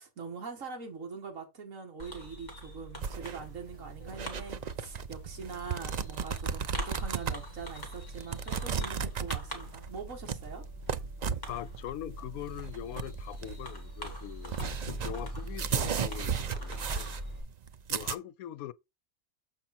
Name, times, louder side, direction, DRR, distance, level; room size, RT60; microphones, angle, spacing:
voice 1, 0.0-10.6, right 5 dB, 65° right, 2.2 m, -43 dB
Fireworks, 2.0-17.4, equal, 30° left, 2.6 m, -42 dB
sound 1, 3.0-18.1, right 7 dB, 90° right, 0.3 m, -35 dB
voice 2, 11.5-14.5 15.0-17.1 17.9-18.7, left 12 dB, 85° left, 1.1 m, -41 dB
7.0 x 5.8 x 4.2 m
omnidirectional pair, 1.5 m